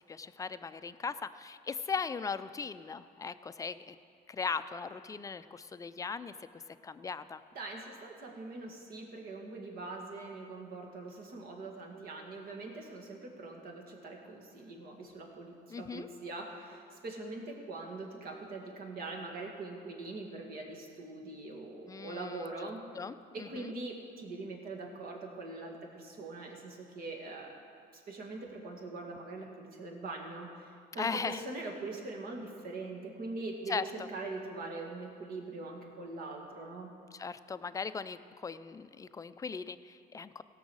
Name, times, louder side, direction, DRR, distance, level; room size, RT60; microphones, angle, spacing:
voice 1, 0.1-4.0 4.3-7.4 15.7-16.1 21.9-22.7 22.9-23.7 31.0-31.4 33.7-33.8 37.1-40.4, left 5 dB, 20° left, 12 dB, 0.4 m, -38 dB
voice 2, 7.5-22.8 23.3-27.6 27.9-36.9, right 3 dB, 60° right, 1 dB, 2.1 m, -42 dB
16.5 x 6.3 x 6.3 m, 2.3 s
cardioid pair, 110°, 17 cm